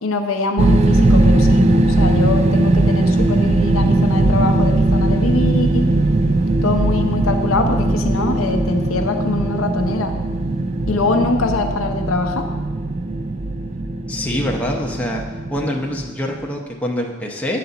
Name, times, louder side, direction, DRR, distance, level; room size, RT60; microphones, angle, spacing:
voice 1, 0.0-5.9 6.6-10.1 10.9-12.5, left 3 dB, 90° left, 4 dB, 0.7 m, -23 dB
sound 1, 0.6-16.4, right 2 dB, 30° right, 0.3 m, -18 dB
voice 2, 14.1-15.2 15.5-17.6, left 1 dB, 5° left, -1 dB, 0.7 m, -25 dB
8.5 x 4.0 x 6.9 m, 1.3 s
head